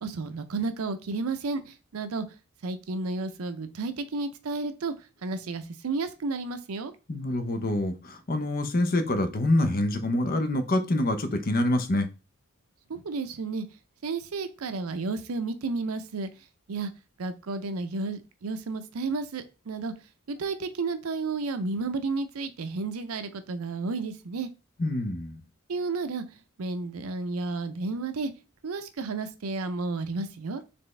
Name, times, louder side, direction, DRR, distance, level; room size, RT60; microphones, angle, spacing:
voice 1, 0.0-2.3 2.6-6.9 12.9-13.7 14.0-16.3 16.7-16.9 17.2-19.9 20.3-24.5 25.7-28.3 28.6-30.6, right 3 dB, 80° right, 10 dB, 0.5 m, -32 dB
voice 2, 7.1-12.1 24.8-25.4, left 1 dB, 45° left, 8 dB, 0.7 m, -26 dB
4.2 x 3.4 x 3.2 m, 0.30 s
head